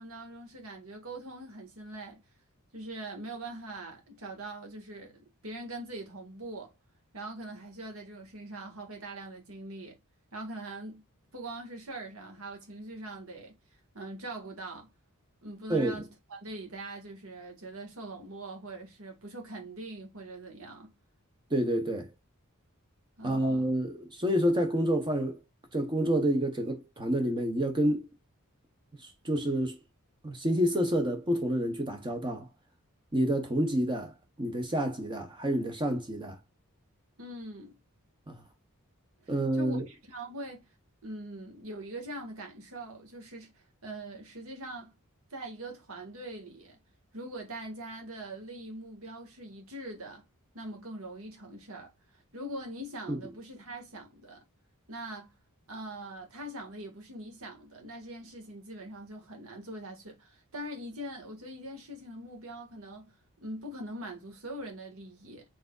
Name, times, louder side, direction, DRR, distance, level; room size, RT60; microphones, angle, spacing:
voice 1, 0.0-2.2 2.7-6.7 7.1-9.9 10.3-11.0 11.3-13.5 13.9-14.9 15.4-20.9 23.2-23.7 37.2-37.8 39.2-40.7 41.0-43.5 43.8-44.9 45.3-46.8 47.1-50.2 50.5-54.4 54.9-55.3 55.7-63.1 63.4-65.4, right 1 dB, 70° right, 1.6 m, -42 dB
voice 2, 21.5-22.1 23.2-25.4 25.7-28.1 29.0-29.8 30.2-32.5 33.1-34.1 34.4-36.4 38.3-38.4 39.3-39.8 53.1-53.2, equal, 20° right, 0.7 m, -28 dB
4.6 x 3.8 x 2.3 m
head